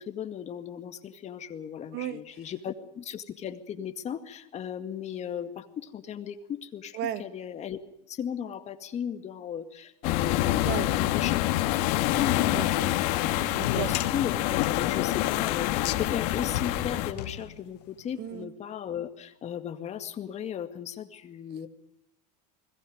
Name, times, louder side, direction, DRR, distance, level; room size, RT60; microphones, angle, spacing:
voice 1, 0.0-7.8 8.1-12.8 13.7-21.7, left 9 dB, 35° left, 7 dB, 2.1 m, -36 dB
voice 2, 6.9-7.3 10.6-10.9 12.5-14.0 18.2-18.5, right 12 dB, 55° right, 12 dB, 1.5 m, -35 dB
sound 1, 10.0-17.1, left 15 dB, 65° left, 2.1 m, -26 dB
sound 2, 13.4-18.0, left 13 dB, 85° left, 1.6 m, -36 dB
29.5 x 21.0 x 5.2 m, 0.80 s
supercardioid pair, 125°, 21 cm